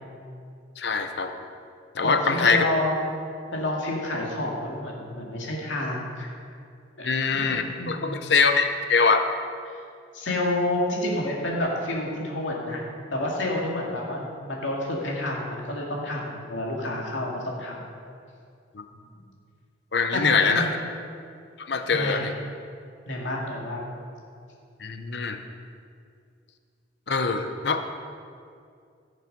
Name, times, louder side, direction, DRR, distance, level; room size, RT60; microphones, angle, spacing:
voice 1, 0.8-1.3 1.9-2.6 7.0-9.2 18.7-18.8 19.9-20.8 21.7-22.3 24.8-25.4 27.1-27.9, left 5 dB, 60° left, 7 dB, 0.8 m, -23 dB
voice 2, 2.0-3.2 3.5-6.3 7.0-8.4 10.1-12.8 13.1-17.8 20.1-20.7 21.9-22.3 23.1-23.8, left 1 dB, 90° left, -2 dB, 2.3 m, -29 dB
15.0 x 6.6 x 5.3 m, 2.3 s
head